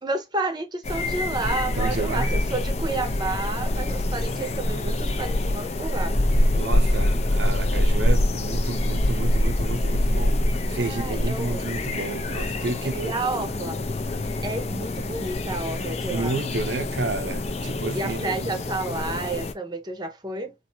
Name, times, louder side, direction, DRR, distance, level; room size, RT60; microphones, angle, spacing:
voice 1, 0.0-6.2 10.8-11.7 12.8-13.8 14.4-16.4 17.9-20.5, right 2 dB, 25° right, 0.8 m, -31 dB
sound 1, 0.8-19.5, left 1 dB, 35° left, 0.6 m, -25 dB
voice 2, 1.8-2.4 6.5-10.4 10.7-13.5 16.1-18.5, right 3 dB, 70° right, 0.6 m, -31 dB
4.3 x 2.6 x 2.6 m
head